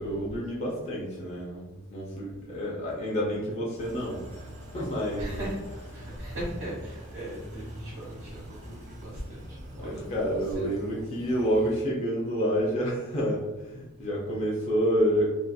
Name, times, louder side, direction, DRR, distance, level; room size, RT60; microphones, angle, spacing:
voice 1, 0.0-4.5 4.7-5.3 9.8-15.3, equal, 30° left, -4 dB, 0.4 m, -29 dB
sound 1, 3.8-11.8, equal, 35° right, 0.7 m, -43 dB
voice 2, 5.2-5.6 5.9-10.1 10.4-10.8 11.2-11.3, right 1 dB, 55° right, -8 dB, 1.1 m, -38 dB
2.6 x 2.4 x 2.2 m, 1.1 s
head